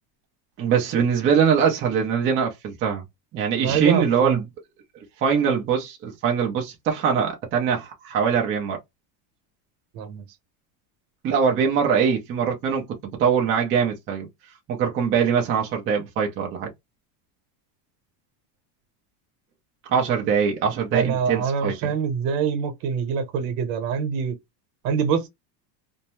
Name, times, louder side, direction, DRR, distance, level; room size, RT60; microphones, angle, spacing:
voice 1, 0.6-3.0 3.3-4.4 5.2-8.8 11.2-12.8 13.2-14.3 14.7-16.7 19.9-21.9, right 7 dB, 25° right, 0.5 m, -22 dB
voice 2, 3.6-4.4 9.9-10.3 20.9-24.4 24.8-25.3, right 6 dB, 80° right, 1.0 m, -25 dB
2.6 x 2.1 x 2.9 m
cardioid pair, 170°, 49 cm